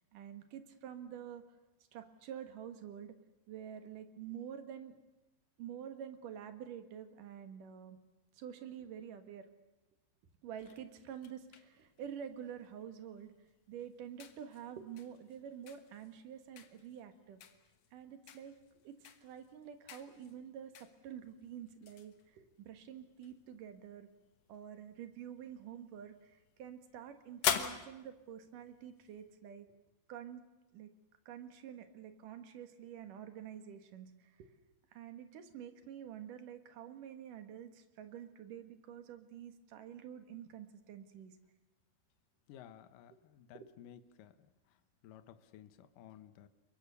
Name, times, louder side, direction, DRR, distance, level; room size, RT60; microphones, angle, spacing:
voice 1, 0.1-1.6 1.9-3.1 3.5-4.9 5.6-8.0 8.3-9.5 10.4-13.3 13.7-17.4 17.9-18.6 18.8-24.1 24.5-29.7 30.1-30.4 30.7-30.9 31.3-34.5 34.9-41.4 43.1-43.2 43.5-43.7, right 9 dB, 60° right, 8 dB, 2.7 m, -48 dB
sound 1, 10.6-29.4, left 9 dB, 90° left, 1.4 m, -46 dB
voice 2, 42.5-44.3 45.0-46.5, left 10 dB, 70° left, 11 dB, 2.2 m, -55 dB
30.0 x 22.5 x 6.9 m, 1.0 s
omnidirectional pair, 5.2 m